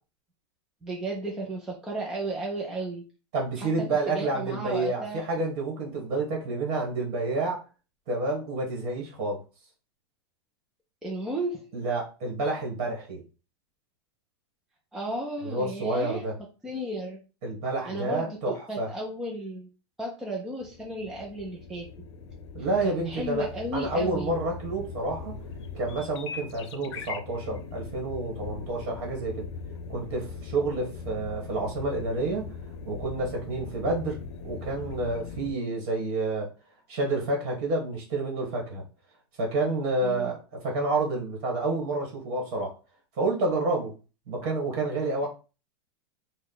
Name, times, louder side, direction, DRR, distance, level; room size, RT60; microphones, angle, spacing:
voice 1, 0.8-3.0 3.6-5.2 11.0-11.7 14.9-16.2 16.6-17.2 17.9-19.7 20.0-21.9 22.8-24.3 40.0-40.3, right 1 dB, 5° right, -2 dB, 0.4 m, -34 dB
voice 2, 3.3-7.6 8.1-9.4 11.7-13.2 15.4-16.3 17.4-18.9 22.5-23.5 23.7-25.3 25.7-29.5 29.9-32.5 32.8-34.2 34.4-36.5 36.9-38.8 39.4-42.7 43.2-43.9 44.3-45.3, right 2 dB, 40° right, 0 dB, 1.4 m, -29 dB
sound 1, 20.6-35.5, left 5 dB, 75° left, 0.6 m, -40 dB
4.0 x 2.1 x 3.9 m, 0.33 s
supercardioid pair, 170°, 14 cm